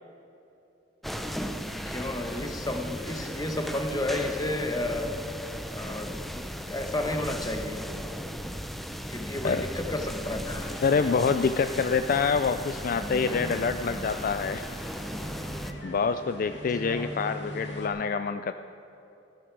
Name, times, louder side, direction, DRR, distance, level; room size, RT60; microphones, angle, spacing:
sound 1, 1.0-15.7, equal, ahead, 0.6 m, -36 dB
voice 1, 1.9-5.2 5.7-7.8 9.1-10.7 16.9-17.1, left 1 dB, 20° left, 5 dB, 1.1 m, -32 dB
sound 2, 10.4-17.9, left 1 dB, 70° left, 1.9 m, -42 dB
voice 2, 10.8-14.6 15.8-18.5, left 5 dB, 50° left, 10 dB, 0.4 m, -26 dB
16.0 x 12.5 x 4.7 m, 3.0 s
head